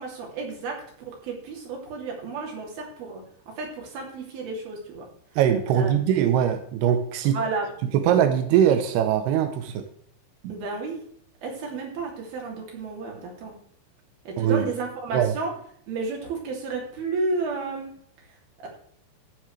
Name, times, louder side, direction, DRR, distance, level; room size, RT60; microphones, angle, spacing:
voice 1, 0.0-5.0 5.7-5.9 7.2-7.7 10.5-11.0 11.4-13.6 14.3-15.5 15.9-17.9, right 3 dB, 55° right, 0 dB, 4.4 m, -32 dB
voice 2, 5.4-7.4 7.9-9.9 14.4-14.6 15.1-15.3, right 9 dB, 80° right, 7 dB, 2.4 m, -21 dB
14.5 x 9.3 x 3.3 m, 0.63 s
omnidirectional pair, 5.6 m